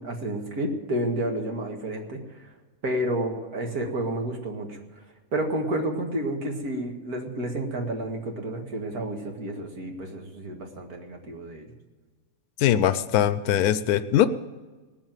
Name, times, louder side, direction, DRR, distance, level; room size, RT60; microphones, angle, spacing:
voice 1, 0.0-2.2 2.8-4.8 5.3-11.7, right 1 dB, 90° right, 2 dB, 2.5 m, -30 dB
voice 2, 12.6-14.3, left 11 dB, 90° left, 13 dB, 1.1 m, -21 dB
19.0 x 7.3 x 9.1 m, 1.3 s
omnidirectional pair, 1.5 m